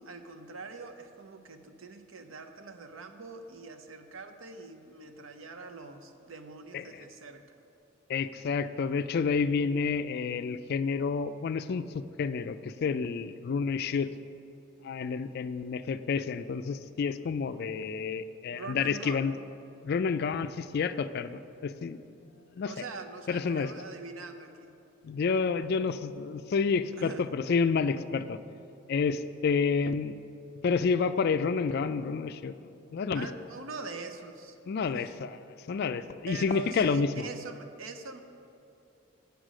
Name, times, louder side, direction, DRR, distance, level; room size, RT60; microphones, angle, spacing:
voice 1, 0.0-7.6 18.5-19.3 22.6-24.8 27.0-27.3 33.1-35.0 36.3-38.2, right 4 dB, 75° right, 7 dB, 0.7 m, -43 dB
voice 2, 8.1-14.1 14.8-19.4 19.8-22.0 22.5-22.7 23.3-23.7 25.0-28.4 28.9-30.2 30.6-33.3 34.7-35.4 35.7-37.3, left 5 dB, 50° left, 12 dB, 0.3 m, -29 dB
8.1 x 6.5 x 6.2 m, 2.7 s
head